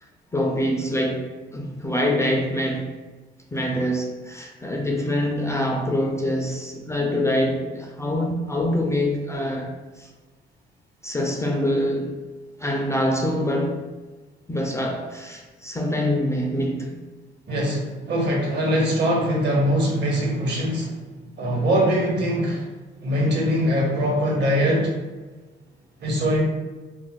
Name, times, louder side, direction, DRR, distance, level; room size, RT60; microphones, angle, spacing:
voice 1, 0.3-1.3 1.5-2.9 3.5-10.1 11.0-12.2 12.6-13.8 14.5-17.0, left 1 dB, 15° left, 0 dB, 0.4 m, -25 dB
voice 2, 17.5-20.9 21.4-22.7 23.0-24.9 26.0-26.4, equal, 60° right, -2 dB, 1.0 m, -22 dB
2.5 x 2.1 x 3.7 m, 1.2 s
cardioid pair, 90°, 20 cm